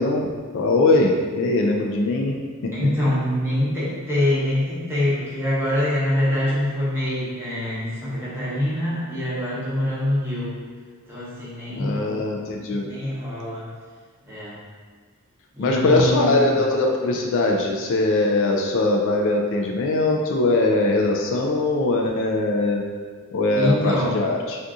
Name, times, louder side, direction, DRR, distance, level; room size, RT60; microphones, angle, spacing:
voice 1, 0.0-2.4 11.7-12.9 15.6-22.8 23.3-24.6, left 2 dB, 60° left, 1 dB, 0.3 m, -21 dB
voice 2, 2.7-10.5 11.1-12.0 12.8-13.7 14.3-14.5 15.5-16.6 23.5-24.2, left 1 dB, 10° right, -10 dB, 0.9 m, -24 dB
2.6 x 2.4 x 3.5 m, 1.6 s
head